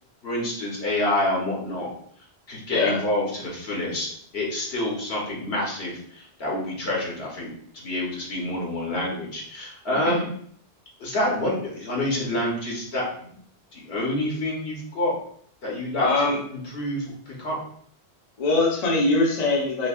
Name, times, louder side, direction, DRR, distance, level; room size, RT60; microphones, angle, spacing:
voice 1, 0.2-1.9 2.5-4.1 4.3-10.3 11.0-13.4 13.7-15.2 15.6-16.1 16.5-17.6, left 1 dB, 70° left, -3 dB, 1.3 m, -27 dB
voice 2, 2.7-3.0 9.9-10.2 16.0-16.4 18.4-19.9, left 2 dB, 40° left, -3 dB, 0.8 m, -22 dB
5.2 x 2.2 x 2.4 m, 0.62 s
omnidirectional pair, 1.1 m